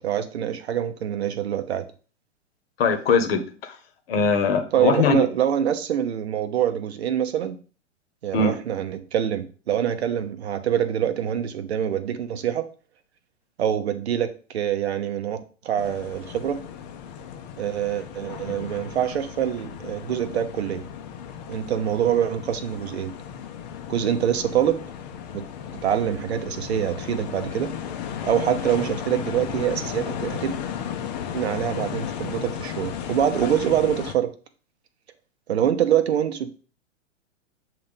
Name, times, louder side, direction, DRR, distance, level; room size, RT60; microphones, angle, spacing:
voice 1, 0.0-1.9 4.7-7.6 8.2-12.7 13.6-16.6 17.6-20.8 21.5-23.1 23.9-24.8 25.3-25.4 25.8-27.7 28.2-30.6 31.3-34.3 35.5-36.5, right 9 dB, 55° right, 10 dB, 0.8 m, -25 dB
voice 2, 2.8-3.8 4.1-5.2 8.3-8.5, left 5 dB, 50° left, 7 dB, 1.1 m, -21 dB
sound 1, 15.8-34.1, left 8 dB, 35° left, 0.7 m, -35 dB
7.3 x 3.0 x 5.3 m, 0.39 s
figure-of-eight pair, 110°, 37 cm